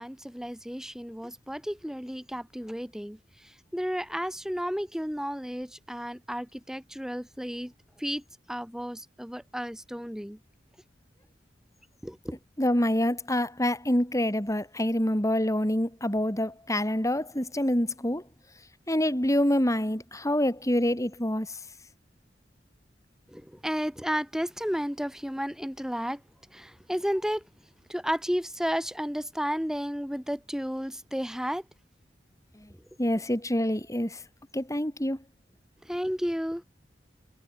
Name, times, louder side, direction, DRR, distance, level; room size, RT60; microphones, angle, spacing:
voice 1, 0.0-7.7 8.0-10.4 12.0-12.4 23.3-26.2 26.5-27.4 27.9-31.6 35.8-36.6, equal, 5° right, 5.5 m, -32 dB
voice 2, 12.6-18.2 18.9-21.6 32.6-32.7 33.0-34.2 34.5-35.2, left 1 dB, 20° left, 5.2 m, -26 dB
head